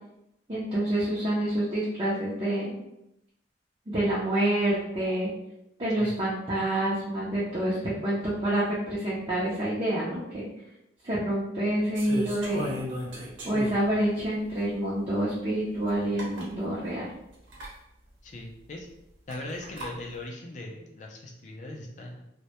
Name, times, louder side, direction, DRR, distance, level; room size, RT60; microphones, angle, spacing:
voice 1, 0.5-2.7 3.9-5.3 5.8-10.5 11.0-12.8 13.4-17.1, right 1 dB, 30° right, -8 dB, 0.5 m, -27 dB
sound 1, 11.9-14.0 14.6-14.7 15.9-16.0 16.2-16.5 17.5-17.7 19.3-19.9, equal, 85° right, 0.7 m, -36 dB
voice 2, 18.2-18.9 19.3-22.3, left 2 dB, 40° left, 0 dB, 0.4 m, -39 dB
2.1 x 2.1 x 2.8 m, 0.84 s
head